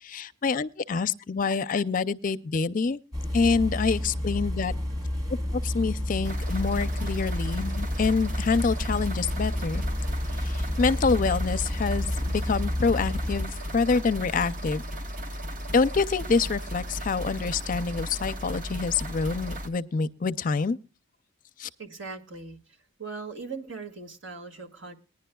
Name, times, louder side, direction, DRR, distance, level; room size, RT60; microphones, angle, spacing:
voice 1, 0.0-3.0 3.3-4.7 5.5-9.8 10.4-14.8 15.7-20.8 21.6-21.7, left 4 dB, 40° left, 0.4 m, -26 dB
sound 1, 3.1-13.4, left 1 dB, 20° right, 3.9 m, -30 dB
sound 2, 6.2-19.7, equal, 45° right, 1.2 m, -35 dB
voice 2, 21.8-22.6 23.0-24.9, right 4 dB, 70° right, 2.0 m, -39 dB
20.0 x 10.5 x 2.3 m
head